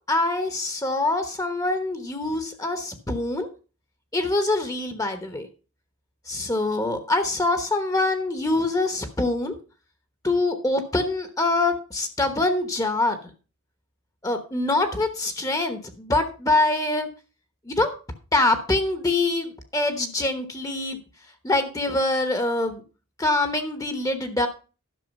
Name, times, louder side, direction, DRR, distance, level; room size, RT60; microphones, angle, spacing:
voice 1, 0.1-3.5 4.1-5.5 6.3-9.5 10.2-13.2 14.2-17.1 17.6-17.9 18.3-21.0 21.4-22.8 23.2-24.5, left 2 dB, 15° left, 8 dB, 1.0 m, -24 dB
11.0 x 6.4 x 5.3 m, 0.34 s
head